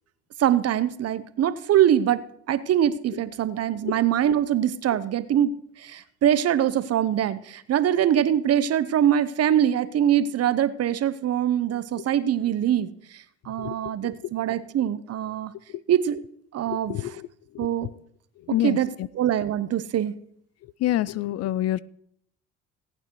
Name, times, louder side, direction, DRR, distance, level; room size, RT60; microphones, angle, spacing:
voice 1, 0.4-15.5 15.9-16.2 16.5-17.2 17.6-17.9 18.6-20.1, right 10 dB, 50° right, 14 dB, 0.8 m, -23 dB
voice 2, 16.7-17.3 18.5-18.8 20.8-21.8, left 14 dB, 50° left, 19 dB, 0.5 m, -26 dB
17.5 x 8.9 x 3.1 m, 0.68 s
hypercardioid pair, 60°, 32 cm